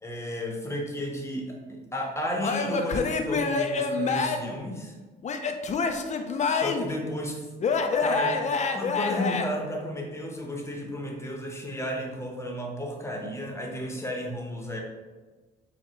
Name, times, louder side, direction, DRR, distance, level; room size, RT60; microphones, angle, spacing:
voice 1, 0.0-4.9 6.4-7.5 8.0-14.8, equal, 15° left, 0 dB, 0.9 m, -33 dB
Male speech man speaking / Yell / Laughter, 2.4-4.6 5.2-7.0 7.6-9.5, left 4 dB, 35° left, 0.4 m, -27 dB
6.5 x 2.3 x 3.1 m, 1.3 s
cardioid pair, 90°, 20 cm